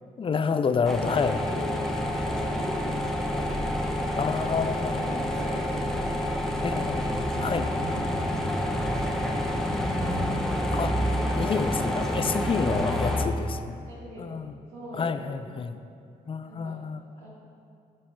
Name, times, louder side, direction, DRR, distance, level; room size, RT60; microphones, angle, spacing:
voice 1, 0.2-1.4 4.2-5.2 6.6-7.1 7.4-7.7 10.7-11.0 11.4-13.9 14.2-14.6 15.0-15.8 16.3-17.0, left 5 dB, 30° left, 10 dB, 0.4 m, -29 dB
voice 2, 0.8-3.4 3.9-7.0 7.6-10.7 13.9-14.4 14.7-15.6 16.4-16.8 17.2-17.3, equal, 90° right, -8 dB, 1.2 m, -44 dB
sound 1, 0.9-13.3, equal, ahead, 0.8 m, -28 dB
10.0 x 4.1 x 3.0 m, 2.3 s
supercardioid pair, 50°, 19 cm